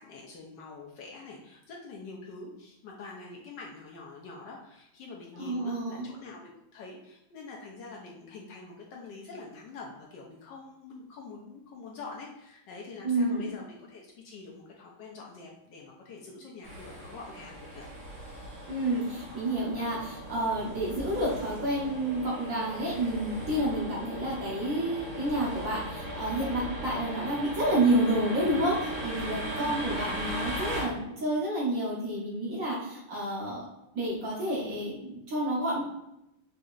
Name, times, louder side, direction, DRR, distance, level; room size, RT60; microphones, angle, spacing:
voice 1, 0.0-17.9 29.6-29.9, left 4 dB, 70° left, -2 dB, 1.2 m, -45 dB
voice 2, 5.4-6.1 13.0-13.5 18.7-33.6 33.9-35.8, right 1 dB, 50° right, -6 dB, 1.2 m, -29 dB
sound 1, 16.6-30.8, right 1 dB, 80° right, 2.6 m, -38 dB
5.0 x 2.8 x 2.4 m, 0.86 s
omnidirectional pair, 2.2 m